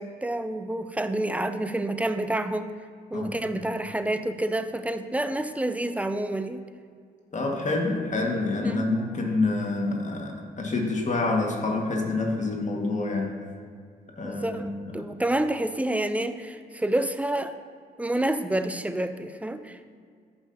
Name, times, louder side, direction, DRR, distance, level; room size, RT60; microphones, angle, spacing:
voice 1, 0.0-2.7 3.1-6.6 8.6-8.9 14.2-17.5 18.0-20.0, right 1 dB, 5° right, 10 dB, 0.6 m, -28 dB
voice 2, 7.3-13.4 14.2-14.6 14.9-15.1, left 3 dB, 40° left, 0 dB, 1.9 m, -27 dB
14.0 x 5.5 x 2.9 m, 2.1 s
hypercardioid pair, 45°, 20 cm